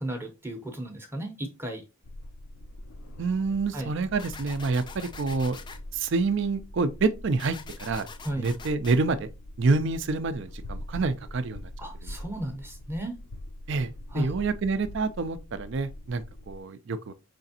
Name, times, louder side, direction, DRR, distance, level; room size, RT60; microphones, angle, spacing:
voice 1, 0.0-1.8 3.7-3.9 8.2-8.5 11.8-13.2 14.1-14.3, right 1 dB, 10° right, 0.6 m, -34 dB
sound 1, 2.0-16.6, left 1 dB, 75° left, 0.6 m, -43 dB
voice 2, 3.2-5.6 5.9-8.1 8.4-9.3 9.6-11.6 12.0-12.2 13.7-17.1, right 4 dB, 55° right, 0.4 m, -27 dB
sound 2, 4.2-5.8 7.4-9.0, left 5 dB, 20° left, 0.3 m, -44 dB
4.8 x 3.4 x 2.7 m
head